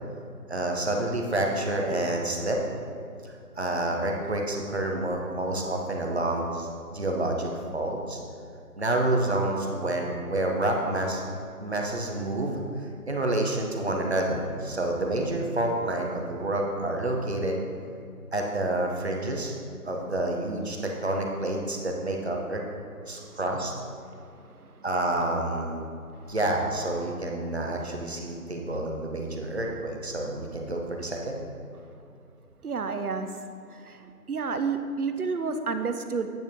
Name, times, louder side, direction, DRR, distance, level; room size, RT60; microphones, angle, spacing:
voice 1, 0.5-2.6 3.2-8.2 8.8-11.2 11.6-17.6 18.3-19.5 19.9-22.6 23.1-23.7 24.8-25.8 26.3-31.4, right 1 dB, 45° right, 1 dB, 0.9 m, -28 dB
voice 2, 32.6-33.3 34.3-36.3, right 4 dB, 70° right, 8 dB, 0.8 m, -29 dB
8.7 x 6.2 x 3.6 m, 2.4 s
figure-of-eight pair, 165°, 46 cm